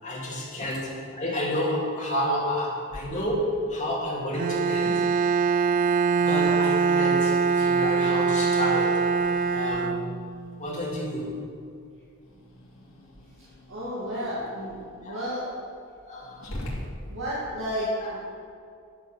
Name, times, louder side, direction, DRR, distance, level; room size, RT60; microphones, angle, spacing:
voice 1, 0.0-5.0 6.2-9.2 9.5-10.1 10.6-11.5 15.0-15.2 16.1-16.5 18.0-18.1, left 1 dB, 35° left, -4 dB, 2.8 m, -30 dB
Growling, 2.9-17.7, left 1 dB, 65° left, 2.9 m, -46 dB
Bowed string instrument, 4.3-10.5, right 5 dB, 40° right, 0.3 m, -23 dB
voice 2, 13.7-15.5 17.1-18.2, equal, 60° right, -8 dB, 2.5 m, -32 dB
11.5 x 7.8 x 6.5 m, 2.4 s
head